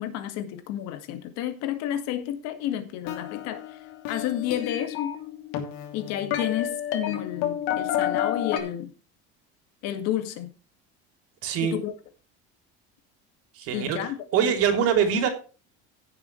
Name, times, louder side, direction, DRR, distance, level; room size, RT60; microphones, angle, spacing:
voice 1, 0.0-3.8 4.1-5.1 5.9-8.9 9.8-10.5 11.6-11.9 13.7-14.2 14.4-14.5, left 11 dB, 65° left, 2.1 m, -31 dB
sound 1, 3.0-8.6, left 10 dB, 85° left, 2.8 m, -30 dB
voice 2, 11.4-11.7 13.5-15.3, right 8 dB, 55° right, 3.3 m, -24 dB
16.5 x 7.3 x 3.2 m
cardioid pair, 155°, 29 cm